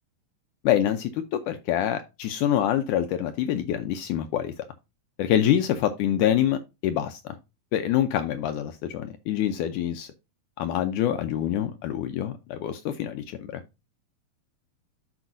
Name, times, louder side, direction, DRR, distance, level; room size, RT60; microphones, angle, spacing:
voice 1, 0.6-4.5 5.2-7.2 7.7-10.1 10.6-13.6, left 11 dB, 80° left, 1.9 m, -26 dB
12.0 x 4.8 x 2.6 m
omnidirectional pair, 4.1 m